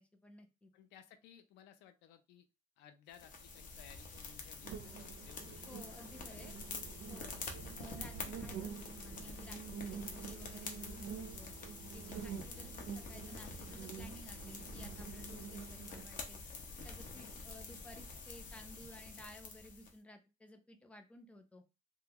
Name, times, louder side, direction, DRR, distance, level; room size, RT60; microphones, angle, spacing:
voice 1, 0.0-0.7 5.7-6.5 7.1-7.4 7.8-11.5 11.9-16.4 16.8-21.6, left 1 dB, 5° left, 5 dB, 0.6 m, -56 dB
voice 2, 0.7-2.5 2.8-5.7 6.3-7.0 12.0-12.3, left 9 dB, 85° left, 9 dB, 0.5 m, -60 dB
sound 1, 3.1-19.9, left 3 dB, 50° left, 0.9 m, -47 dB
sound 2, 4.6-16.0, right 7 dB, 80° right, 0.5 m, -48 dB
3.7 x 2.2 x 2.9 m, 0.28 s
cardioid pair, 110°, 17 cm